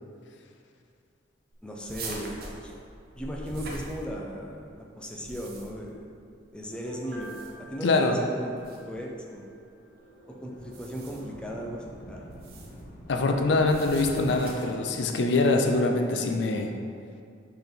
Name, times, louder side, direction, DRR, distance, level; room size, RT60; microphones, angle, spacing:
voice 1, 1.6-2.4 2.6-2.7 3.1-6.1 6.5-7.4 7.7-9.5 10.4-12.3, equal, 5° left, -2 dB, 0.5 m, -37 dB
sound 1, 1.9-4.5 5.1-5.9 7.1-7.7 8.6-8.8 10.6-11.4 12.3-12.8 13.6-14.8, right 2 dB, 55° right, 0.8 m, -42 dB
Piano, 6.7-9.4 9.8-9.9, right 2 dB, 80° right, 1.3 m, -47 dB
voice 2, 7.8-8.2 13.1-16.7, left 2 dB, 70° left, 4 dB, 0.5 m, -24 dB
Monster Attack, 8.4-9.0 9.6-14.4, equal, 45° left, 1.1 m, -47 dB
4.6 x 4.0 x 5.1 m, 2.3 s
head